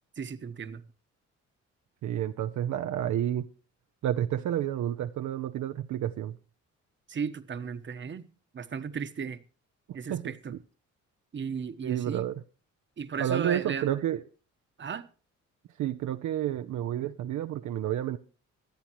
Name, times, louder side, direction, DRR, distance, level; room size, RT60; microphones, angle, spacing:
voice 1, 0.2-0.8 7.1-8.3 8.5-9.4 9.9-10.5 11.3-12.3 13.0-13.9 14.8-15.1, right 6 dB, 40° right, 1.2 m, -35 dB
voice 2, 2.0-3.5 4.0-6.3 10.1-10.6 11.8-12.4 13.2-14.2 15.8-18.2, right 11 dB, 70° right, 0.7 m, -30 dB
25.0 x 8.7 x 3.0 m
cardioid pair, 90°, 30 cm